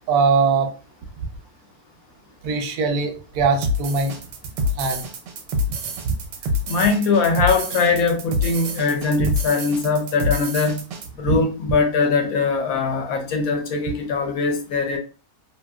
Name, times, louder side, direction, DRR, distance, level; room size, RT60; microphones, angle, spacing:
voice 1, 0.1-0.7 2.4-4.1 4.8-5.1 9.2-9.3 11.2-11.4, right 4 dB, 70° right, 5 dB, 1.0 m, -21 dB
sound 1, 3.6-11.1, left 1 dB, 85° right, 1.2 m, -27 dB
voice 2, 6.7-10.8 11.2-15.0, left 4 dB, 65° left, 4 dB, 0.9 m, -21 dB
2.8 x 2.7 x 2.3 m, 0.35 s
omnidirectional pair, 1.8 m